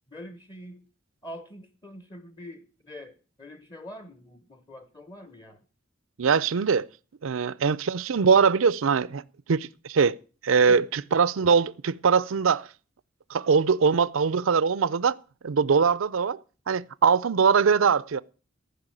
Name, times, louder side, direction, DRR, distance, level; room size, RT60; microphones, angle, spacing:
voice 1, 0.1-0.9 1.2-5.6 10.6-10.9, left 1 dB, 20° left, 0.9 m, -44 dB
voice 2, 6.2-6.9 7.2-9.2 9.5-10.2 10.4-12.7 13.3-15.2 15.4-16.4 16.7-18.2, right 5 dB, 80° right, 0.5 m, -22 dB
15.0 x 5.5 x 9.0 m
head